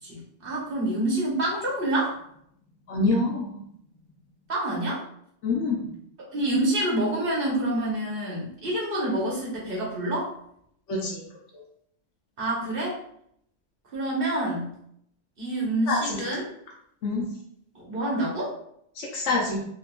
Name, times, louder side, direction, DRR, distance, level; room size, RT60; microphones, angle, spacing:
voice 1, 0.0-2.2 4.5-5.0 6.3-10.3 12.4-13.0 13.9-14.7 15.4-16.5 17.7-18.5, right 1 dB, 50° right, -5 dB, 1.3 m, -27 dB
voice 2, 2.9-3.6 5.4-5.8 10.9-11.2 15.9-16.2 17.0-17.3 19.0-19.7, left 3 dB, 80° left, -2 dB, 1.0 m, -26 dB
3.6 x 2.9 x 2.2 m, 0.70 s
omnidirectional pair, 1.2 m